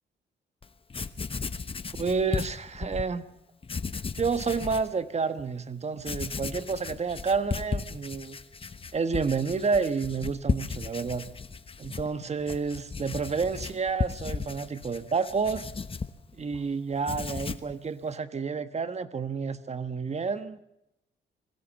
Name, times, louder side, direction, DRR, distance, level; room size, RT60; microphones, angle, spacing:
Writing, 0.6-0.7 0.9-3.1 3.6-4.9 5.4-5.5 6.0-16.6 16.9-17.7, left 4 dB, 30° left, 1.1 m, -35 dB
voice 1, 2.0-3.3 4.2-8.4 8.9-11.2 11.8-15.6 16.3-20.6, right 5 dB, 35° right, 11 dB, 1.4 m, -30 dB
22.5 x 16.5 x 7.2 m, 0.86 s
cardioid pair, 100°, 18 cm